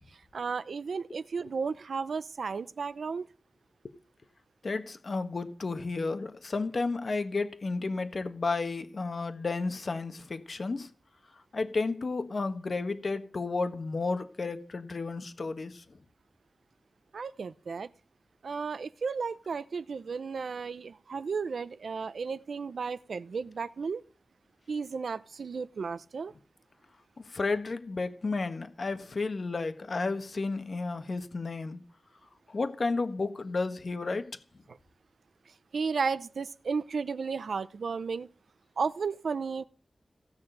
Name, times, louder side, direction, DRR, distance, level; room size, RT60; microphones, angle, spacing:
voice 1, 0.1-3.3 17.1-17.9 18.4-24.0 24.7-26.3 34.7-34.8 35.7-38.3 38.8-39.6, right 5 dB, 90° right, 0.7 m, -34 dB
voice 2, 4.6-10.9 11.5-15.8 27.3-31.8 32.5-34.3, left 3 dB, 55° left, 1.4 m, -32 dB
16.5 x 6.1 x 9.0 m
wide cardioid pair, 105°, 0 cm